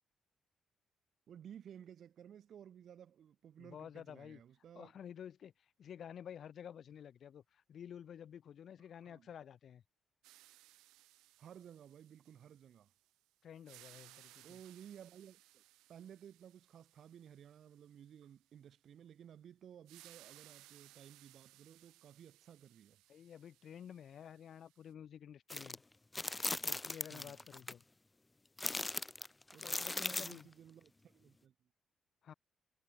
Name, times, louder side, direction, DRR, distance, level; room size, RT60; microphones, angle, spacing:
voice 1, 1.3-4.9 9.0-9.3 11.4-12.9 14.4-15.6 15.9-23.0 27.1-27.4 29.5-31.7, right 9 dB, 65° right, 3.7 m, -56 dB
voice 2, 3.6-4.4 4.7-9.8 13.4-14.6 23.1-25.8 26.5-27.8 29.6-30.5 32.2-32.3, left 9 dB, 60° left, 4.1 m, -51 dB
sound 1, 10.2-13.2 13.5-18.3 19.9-24.9, right 18 dB, 80° right, 2.6 m, -63 dB
sound 2, 25.5-25.8 26.1-27.7 28.6-30.4, left 2 dB, 20° left, 1.3 m, -39 dB
hypercardioid pair, 45°, 0 cm